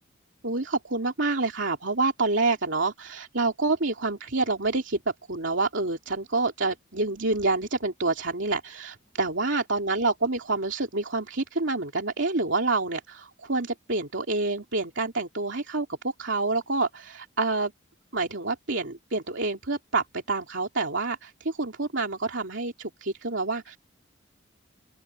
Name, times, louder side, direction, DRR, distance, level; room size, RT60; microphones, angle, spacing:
voice 1, 0.4-17.7 18.1-23.8, right 3 dB, 70° right, 2.6 m, -27 dB
open air
head